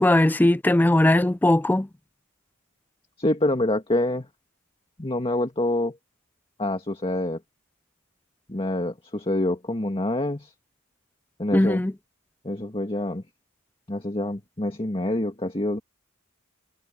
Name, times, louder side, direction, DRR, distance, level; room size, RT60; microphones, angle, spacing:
voice 1, 0.0-1.9 11.5-11.9, left 1 dB, 10° left, 0.3 m, -19 dB
voice 2, 3.2-4.3 5.0-6.0 6.6-7.4 8.5-10.5 11.4-11.8 12.4-13.2 13.9-15.8, left 1 dB, 25° left, 2.0 m, -26 dB
head